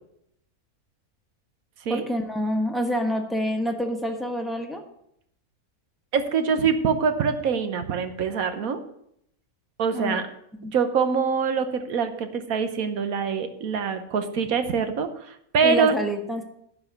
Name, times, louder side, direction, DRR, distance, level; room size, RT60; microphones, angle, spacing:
voice 1, 1.9-4.8 9.9-10.2 10.5-10.7 15.6-16.4, equal, ahead, 3 dB, 1.0 m, -27 dB
voice 2, 6.1-8.8 9.8-10.2 10.7-16.0, right 6 dB, 75° right, 9 dB, 1.4 m, -24 dB
11.0 x 4.8 x 8.1 m, 0.74 s
omnidirectional pair, 1.5 m